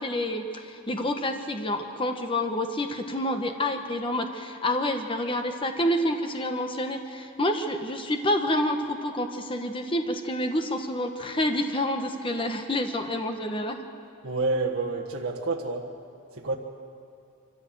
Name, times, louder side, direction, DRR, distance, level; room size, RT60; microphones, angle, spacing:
voice 1, 0.0-13.8, left 1 dB, 25° left, 5 dB, 1.2 m, -28 dB
voice 2, 14.2-15.9 16.3-16.6, right 3 dB, 75° right, -2 dB, 1.5 m, -28 dB
24.5 x 14.5 x 7.7 m, 2.6 s
head